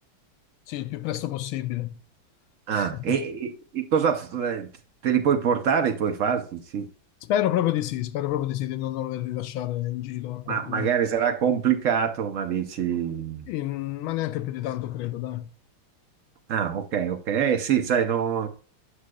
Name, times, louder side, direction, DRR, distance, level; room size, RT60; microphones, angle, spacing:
voice 1, 0.7-2.0 2.7-3.2 7.2-10.9 13.5-15.5, left 13 dB, 85° left, 1.5 m, -29 dB
voice 2, 2.7-4.7 5.0-6.9 10.5-13.4 16.5-18.5, right 8 dB, 70° right, 0.7 m, -25 dB
8.5 x 6.2 x 2.2 m
omnidirectional pair, 2.2 m